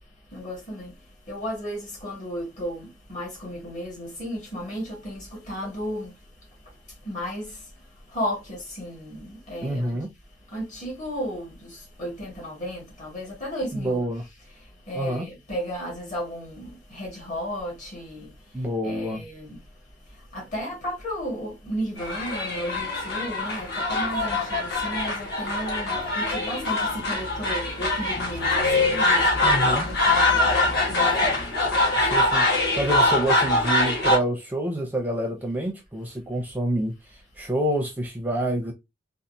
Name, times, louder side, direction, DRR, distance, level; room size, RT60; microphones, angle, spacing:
voice 1, 0.3-0.9 1.3-6.2 7.0-7.6 8.1-10.0 10.5-14.0 14.5-18.3 18.8-19.6 20.3-31.5, equal, 40° left, 1.7 m, -34 dB
voice 2, 9.6-10.1 13.7-14.2 14.9-15.3 18.5-19.2 29.0-29.9 32.0-32.5 32.8-38.7, right 1 dB, 10° right, 0.5 m, -27 dB
sound 1, 22.0-34.2, left 2 dB, 55° left, 1.3 m, -23 dB
4.1 x 2.4 x 2.6 m
head